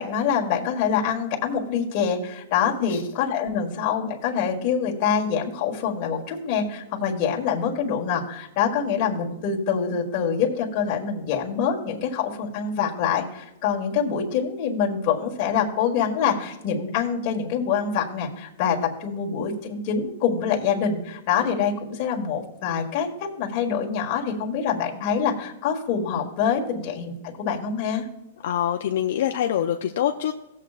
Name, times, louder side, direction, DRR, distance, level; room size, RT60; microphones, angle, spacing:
voice 1, 0.0-23.1 23.4-28.1, left 7 dB, 35° left, -1 dB, 1.7 m, -25 dB
voice 2, 28.4-30.3, left 10 dB, 60° left, 5 dB, 0.5 m, -24 dB
18.0 x 7.6 x 2.5 m, 0.89 s
hypercardioid pair, 160°, 0 cm